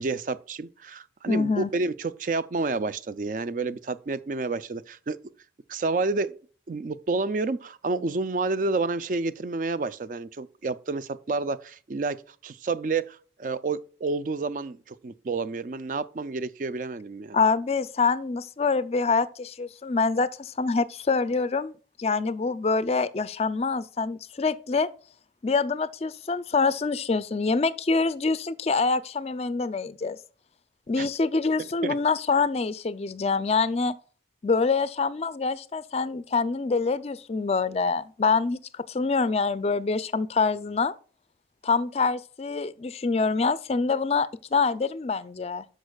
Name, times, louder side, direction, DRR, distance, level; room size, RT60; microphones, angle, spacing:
voice 1, 0.0-5.2 5.7-6.3 6.7-12.2 12.4-17.4 31.0-31.1 31.8-31.9, right 3 dB, 45° right, 0.4 m, -29 dB
voice 2, 1.3-1.7 17.3-21.7 22.0-24.9 25.4-30.2 30.9-33.9 34.4-40.9 41.6-45.6, left 4 dB, 35° left, 0.4 m, -25 dB
12.5 x 5.1 x 2.3 m
head